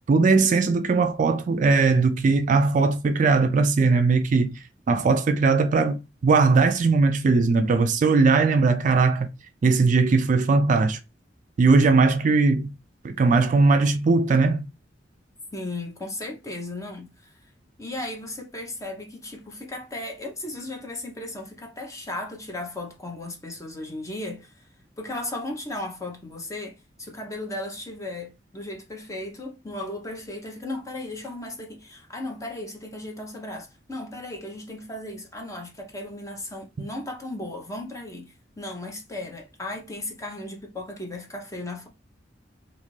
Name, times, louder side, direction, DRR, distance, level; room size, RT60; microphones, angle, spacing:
voice 1, 0.1-4.6 4.9-9.3 9.6-11.0 11.6-12.7 13.0-14.7, right 4 dB, 45° right, 0.3 m, -19 dB
voice 2, 15.5-17.3 17.8-24.7 25.0-41.9, left 2 dB, 20° left, 0.7 m, -36 dB
2.5 x 2.4 x 3.1 m
head